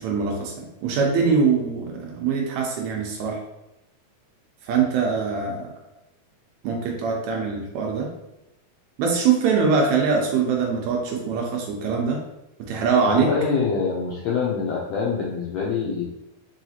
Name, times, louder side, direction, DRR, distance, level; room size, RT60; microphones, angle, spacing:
voice 1, 0.0-3.4 4.6-5.7 6.6-8.1 9.0-12.2 12.6-13.3, right 5 dB, 80° right, 0 dB, 1.8 m, -23 dB
voice 2, 13.0-16.1, left 5 dB, 80° left, -4 dB, 1.5 m, -25 dB
4.8 x 3.0 x 2.8 m, 0.90 s
omnidirectional pair, 3.6 m